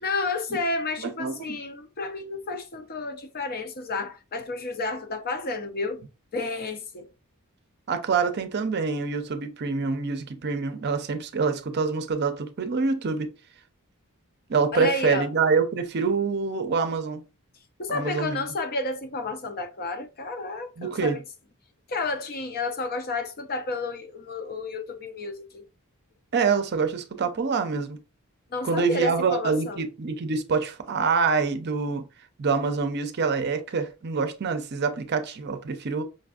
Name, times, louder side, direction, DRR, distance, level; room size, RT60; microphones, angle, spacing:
voice 1, 0.0-6.0 6.3-7.1 14.7-15.3 17.8-21.2 21.9-25.6 28.5-29.8, left 3 dB, 45° left, 0.6 m, -31 dB
voice 2, 1.0-1.6 7.9-13.3 14.5-17.2 17.9-18.4 20.8-21.2 26.3-28.0 28.6-32.1 32.4-36.0, right 5 dB, 50° right, 0.5 m, -26 dB
5.2 x 2.5 x 2.4 m
head